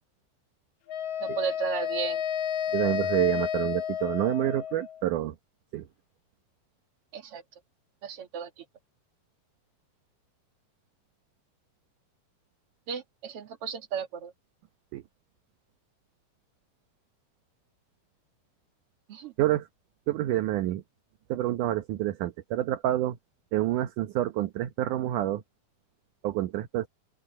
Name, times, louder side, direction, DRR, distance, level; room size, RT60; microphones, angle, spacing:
Wind instrument woodwind instrument, 0.9-5.0, left 9 dB, 70° left, 1.9 m, -31 dB
voice 1, 1.2-2.2 7.1-7.4 8.0-8.6 12.9-14.3 19.1-19.3, right 7 dB, 45° right, 2.8 m, -34 dB
voice 2, 2.7-5.4 5.7-5.9 14.9-15.0 19.4-19.7 20.1-20.8 21.3-23.2 23.5-25.4 26.2-26.9, right 14 dB, 70° right, 2.3 m, -28 dB
open air
omnidirectional pair, 4.2 m